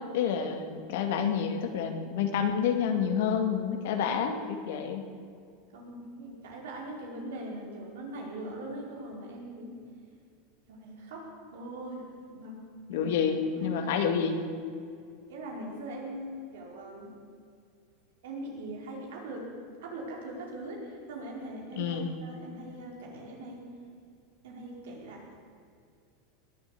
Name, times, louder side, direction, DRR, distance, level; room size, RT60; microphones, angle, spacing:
voice 1, 0.0-5.1 12.9-14.4 21.8-22.1, left 7 dB, 70° left, 5 dB, 2.0 m, -29 dB
voice 2, 5.7-9.8 10.7-12.6 12.9-13.1 13.5-13.7 14.1-14.2 15.3-17.1 18.2-19.5 19.8-23.7 24.4-25.4, right 1 dB, 80° right, -1 dB, 4.6 m, -41 dB
20.0 x 8.2 x 8.5 m, 2.3 s
hypercardioid pair, 110°, 0 cm